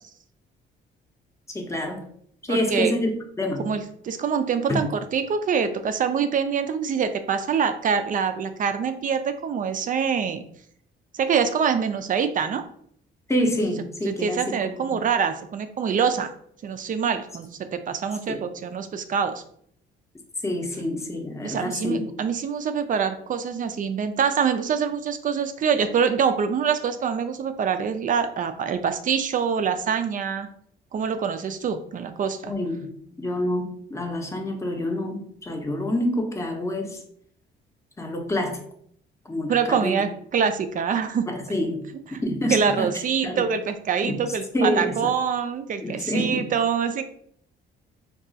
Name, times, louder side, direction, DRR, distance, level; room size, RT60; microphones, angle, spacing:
voice 1, 1.5-2.0 2.5-3.6 4.7-4.8 13.3-15.0 18.3-18.4 20.4-22.1 32.4-32.9 33.2-37.0 38.0-38.6 39.3-40.0 41.3-41.8 42.2-42.9 43.2-43.5 44.0-44.2 44.5-44.9 45.8-46.5, left 1 dB, 15° left, 2 dB, 0.6 m, -27 dB
voice 2, 2.5-2.9 3.6-10.4 11.1-12.6 14.0-16.3 16.6-19.4 21.4-30.5 30.9-32.5 39.5-41.3 42.5-47.0, right 6 dB, 45° right, 9 dB, 0.4 m, -25 dB
2.4 x 2.3 x 3.8 m, 0.66 s
cardioid pair, 90°, 20 cm